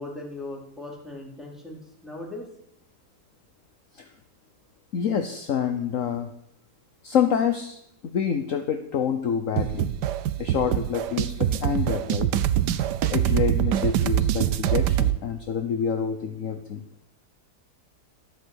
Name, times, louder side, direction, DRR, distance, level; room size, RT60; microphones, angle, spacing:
voice 1, 0.0-2.5, left 2 dB, ahead, -2 dB, 4.4 m, -38 dB
voice 2, 4.9-6.3 7.0-7.8 8.1-9.9 10.4-12.3 13.1-16.8, left 7 dB, 55° left, 8 dB, 1.3 m, -27 dB
sound 1, 9.6-15.2, right 11 dB, 85° right, 1.4 m, -24 dB
13.0 x 12.0 x 8.1 m, 0.75 s
omnidirectional pair, 1.8 m